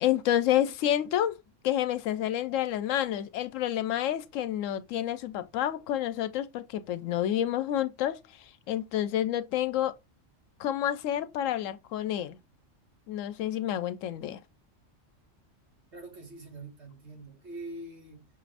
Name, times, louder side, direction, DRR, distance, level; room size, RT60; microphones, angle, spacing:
voice 1, 0.0-1.4 1.6-10.0 10.6-12.4 13.1-14.4, left 11 dB, 90° left, 0.9 m, -29 dB
voice 2, 15.9-18.3, right 2 dB, 60° right, 1.8 m, -44 dB
6.1 x 2.5 x 3.3 m
omnidirectional pair, 1.3 m